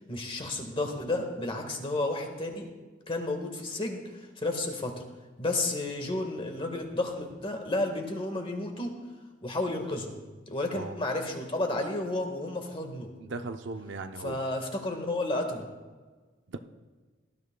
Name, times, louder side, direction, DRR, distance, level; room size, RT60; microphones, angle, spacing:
voice 1, 0.1-2.7 3.1-5.0 5.4-8.9 9.4-10.1 10.5-13.1 14.2-15.7, left 2 dB, 30° left, 4 dB, 1.6 m, -32 dB
voice 2, 13.2-14.4 16.5-16.6, right 3 dB, 65° right, 8 dB, 0.6 m, -38 dB
19.0 x 12.5 x 2.3 m, 1.3 s
head